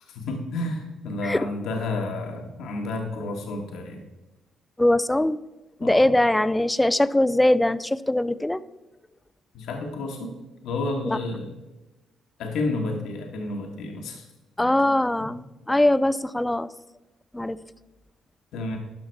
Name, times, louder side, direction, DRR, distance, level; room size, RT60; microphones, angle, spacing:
voice 1, 0.1-4.0 5.8-6.1 9.5-10.3 10.6-11.5 12.4-14.2 14.6-14.7 18.5-18.8, left 2 dB, 80° left, 2 dB, 1.5 m, -30 dB
voice 2, 4.8-5.4 5.8-8.6 11.0-11.2 14.6-16.7 17.3-17.6, left 1 dB, 10° left, 16 dB, 0.4 m, -21 dB
12.0 x 5.9 x 4.6 m, 1.1 s
cardioid pair, 90°, 0 cm